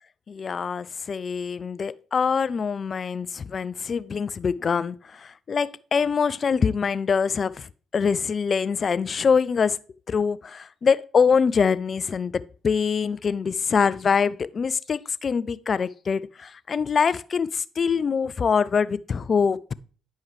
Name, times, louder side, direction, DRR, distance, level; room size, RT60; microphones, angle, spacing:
voice 1, 0.3-7.7 7.9-9.8 10.1-19.7, left 6 dB, 45° left, 0.4 m, -24 dB
9.1 x 5.5 x 3.2 m
hypercardioid pair, 55°, 0 cm